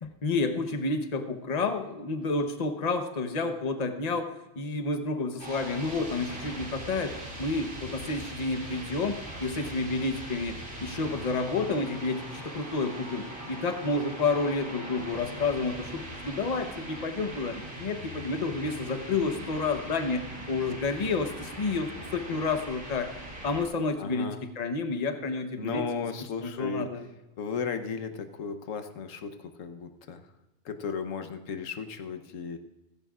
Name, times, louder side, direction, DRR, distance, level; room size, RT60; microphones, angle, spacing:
voice 1, 0.0-4.2 4.6-7.1 7.4-23.1 23.4-25.8 26.4-27.1, left 3 dB, 35° left, 7 dB, 1.0 m, -30 dB
sound 1, 5.4-23.6, right 1 dB, 60° right, 3.1 m, -41 dB
voice 2, 24.0-24.5 25.6-26.9 27.4-30.2 30.6-32.6, left 5 dB, 90° left, 8 dB, 1.3 m, -35 dB
16.0 x 15.0 x 2.4 m, 0.99 s
omnidirectional pair, 1.3 m